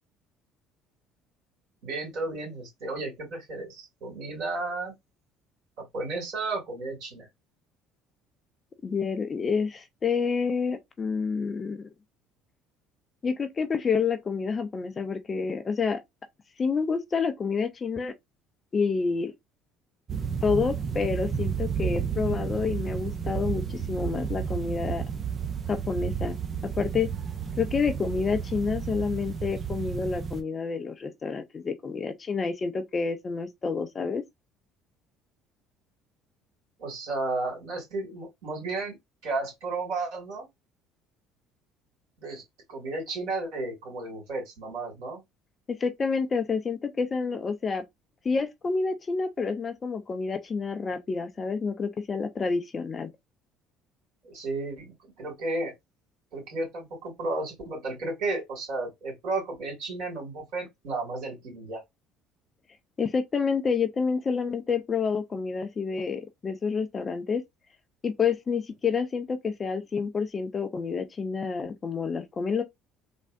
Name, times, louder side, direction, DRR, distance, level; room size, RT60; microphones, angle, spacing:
voice 1, 1.8-4.9 5.9-7.3 36.8-39.0 39.2-40.5 42.2-42.4 42.7-45.2 54.2-55.7 56.3-61.8, right 2 dB, 65° right, 2.2 m, -33 dB
voice 2, 8.8-11.9 13.2-16.0 16.6-18.1 18.7-19.3 20.4-25.0 25.7-26.4 26.8-27.1 27.6-34.2 45.7-47.8 48.2-53.1 63.0-67.4 68.0-72.6, left 5 dB, 35° left, 0.6 m, -28 dB
sound 1, 20.1-30.4, right 7 dB, 40° right, 0.6 m, -32 dB
3.5 x 2.0 x 2.5 m
hypercardioid pair, 60°, 0 cm